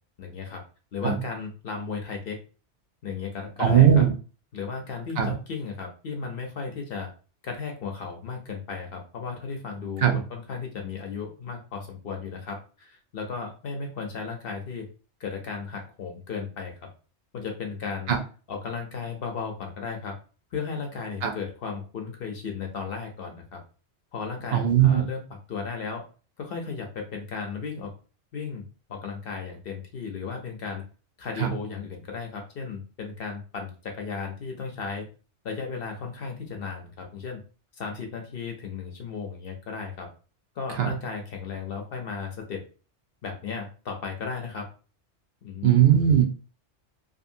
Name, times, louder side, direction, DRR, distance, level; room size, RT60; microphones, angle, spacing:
voice 1, 0.2-0.6 0.9-2.4 3.0-4.0 4.5-7.1 7.4-14.9 15.2-16.7 17.3-18.2 18.5-20.1 20.5-23.6 24.1-25.2 25.5-26.0 26.4-27.9 28.3-28.6 28.9-30.8 31.2-35.1 35.4-37.4 37.8-40.1 40.6-42.6 43.2-44.7 45.4-45.9, left 5 dB, 60° left, 3 dB, 0.8 m, -35 dB
voice 2, 3.6-4.1 5.2-5.3 10.0-10.1 18.1-18.2 21.2-21.3 24.5-25.0 31.4-31.5 40.8-40.9 45.6-46.2, right 9 dB, 65° right, 5 dB, 0.8 m, -18 dB
2.7 x 2.5 x 2.6 m, 0.36 s
omnidirectional pair, 1.2 m